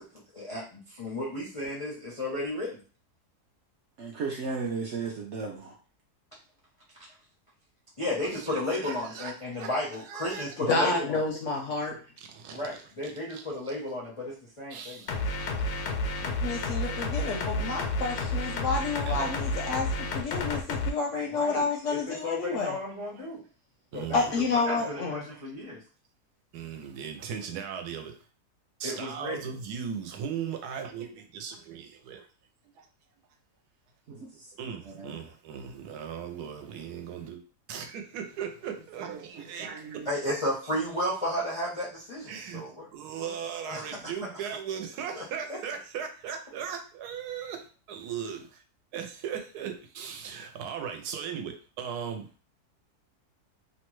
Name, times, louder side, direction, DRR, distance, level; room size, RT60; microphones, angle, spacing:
voice 1, 0.3-2.8 8.0-11.2 12.5-15.0 16.2-16.3 21.3-23.4 23.9-24.2 24.6-25.8 28.8-29.6 40.1-42.9 43.2-43.3 43.7-44.0 45.1-45.2 45.5-45.6, left 1 dB, 45° left, -6 dB, 0.4 m, -33 dB
voice 2, 4.0-5.7 34.1-34.3 34.9-35.2 39.1-39.2 39.6-39.9, right 4 dB, 65° right, -1 dB, 0.7 m, -35 dB
voice 3, 8.2-9.3 9.6-10.5 12.2-13.8 14.7-15.2 15.4-15.5 16.2-16.3 19.0-19.3 21.9-22.0 23.1-23.2 23.9-24.4 25.3-25.4 26.5-28.2 28.8-32.3 32.8-32.9 34.6-37.4 37.7-39.7 42.3-47.6 47.9-48.6 48.9-52.3, right 7 dB, 85° right, 5 dB, 1.1 m, -38 dB
voice 4, 10.7-12.0 16.4-22.8 24.1-25.2, left 4 dB, 65° left, 1 dB, 0.8 m, -29 dB
sound 1, 15.1-20.9, left 2 dB, 85° left, 1.1 m, -31 dB
2.9 x 2.2 x 3.0 m, 0.37 s
omnidirectional pair, 1.7 m